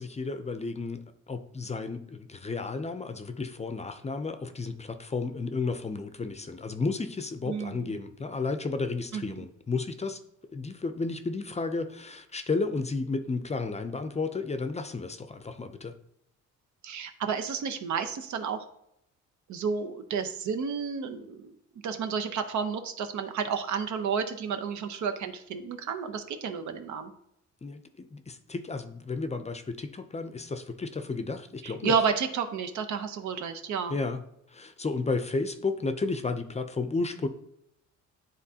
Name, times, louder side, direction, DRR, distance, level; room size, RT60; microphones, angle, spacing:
voice 1, 0.0-10.2 10.5-15.9 27.6-31.9 33.9-34.2 34.5-37.3, left 3 dB, 20° left, 9 dB, 0.5 m, -32 dB
voice 2, 7.5-8.0 9.1-9.4 16.8-18.6 19.5-21.6 21.8-27.1 31.6-34.0, right 6 dB, 70° right, 8 dB, 0.8 m, -31 dB
9.8 x 3.7 x 2.8 m, 0.77 s
cardioid pair, 90°, 30 cm